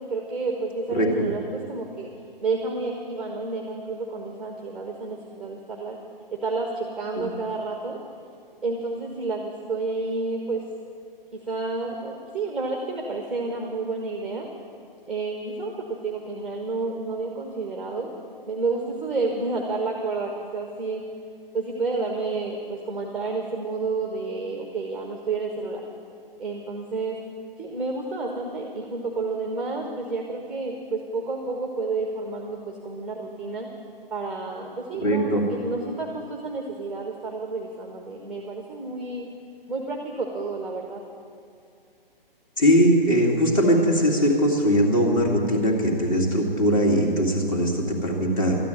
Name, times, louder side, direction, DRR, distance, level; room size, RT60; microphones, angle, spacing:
voice 1, 0.0-2.1 2.4-6.0 6.3-8.0 8.6-10.6 11.4-14.5 15.1-18.1 18.5-21.0 21.5-25.8 26.4-27.2 27.6-33.7 34.1-39.3 39.7-41.0, right 3 dB, 5° right, 2 dB, 0.7 m, -30 dB
voice 2, 35.0-35.4 42.6-48.6, equal, 35° left, 0 dB, 2.5 m, -21 dB
13.0 x 9.3 x 9.0 m, 2.3 s
figure-of-eight pair, 135°, 29 cm